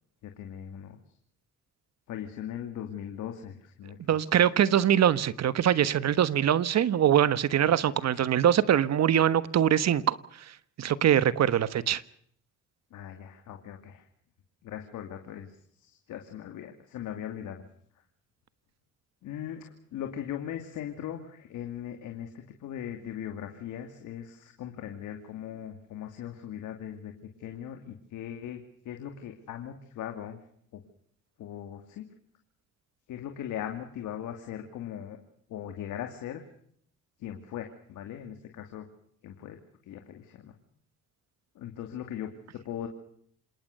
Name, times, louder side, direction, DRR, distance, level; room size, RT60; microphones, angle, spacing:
voice 1, 0.2-1.0 2.1-4.2 7.6-7.9 12.9-14.1 14.6-17.6 19.2-27.1 27.4-30.4 30.7-30.8 31.4-32.1 33.1-35.2 35.5-36.4 37.2-38.9 39.2-39.6 39.8-40.5 41.5-42.9, left 10 dB, 85° left, 5 dB, 2.6 m, -39 dB
voice 2, 4.1-10.2 10.8-12.0, right 10 dB, 60° right, 16 dB, 1.3 m, -23 dB
28.0 x 19.0 x 6.7 m, 0.66 s
cardioid pair, 90°, 30 cm